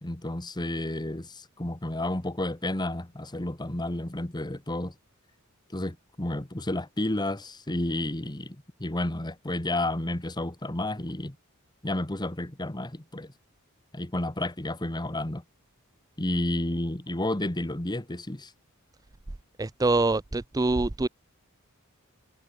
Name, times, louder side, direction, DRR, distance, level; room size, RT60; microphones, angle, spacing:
voice 1, 0.0-4.9 5.7-11.4 11.8-13.3 13.9-15.4 16.2-18.5, left 1 dB, 20° left, 1.4 m, -31 dB
voice 2, 19.6-21.1, right 2 dB, 15° right, 0.5 m, -25 dB
head